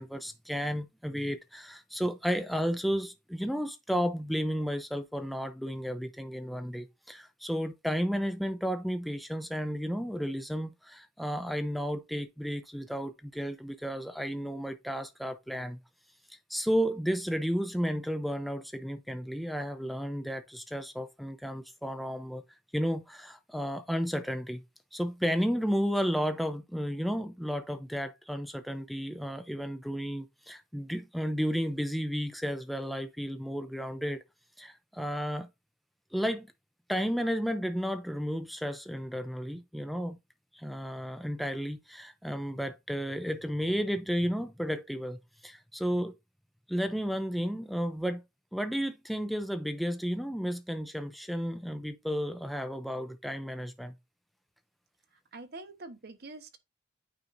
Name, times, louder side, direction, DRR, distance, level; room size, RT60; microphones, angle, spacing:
voice 1, 0.0-15.8 16.3-22.4 22.7-24.6 24.9-34.2 34.6-35.5 36.1-36.5 36.9-40.2 40.5-46.1 46.7-48.2 48.5-54.0, equal, ahead, 0.5 m, -33 dB
voice 2, 55.3-56.6, right 2 dB, 55° right, 1.1 m, -45 dB
8.9 x 5.2 x 2.6 m
head